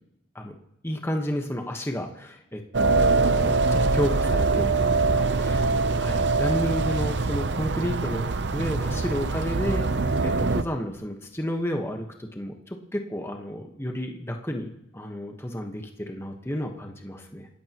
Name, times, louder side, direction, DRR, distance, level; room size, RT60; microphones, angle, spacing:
voice 1, 0.8-8.3 8.5-17.5, equal, 15° left, 3 dB, 1.3 m, -32 dB
sound 1, 2.7-10.6, right 3 dB, 65° right, 0.7 m, -23 dB
28.0 x 14.0 x 3.0 m, 0.85 s
head